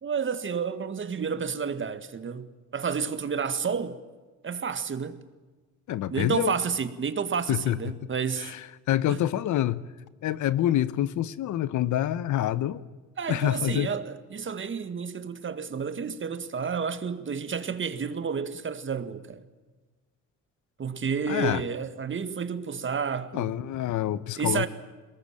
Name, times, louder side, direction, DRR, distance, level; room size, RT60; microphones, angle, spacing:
voice 1, 0.0-2.5 2.7-4.0 4.4-5.2 6.1-8.5 9.1-9.2 13.2-19.4 20.8-23.5 24.4-24.7, right 6 dB, 40° right, 1.8 m, -30 dB
voice 2, 5.9-6.5 7.5-7.8 8.4-8.6 8.9-9.8 10.2-12.8 13.3-13.9 21.3-21.6 23.3-24.7, left 13 dB, 75° left, 1.0 m, -26 dB
22.5 x 19.5 x 8.8 m
cardioid pair, 90°, 30 cm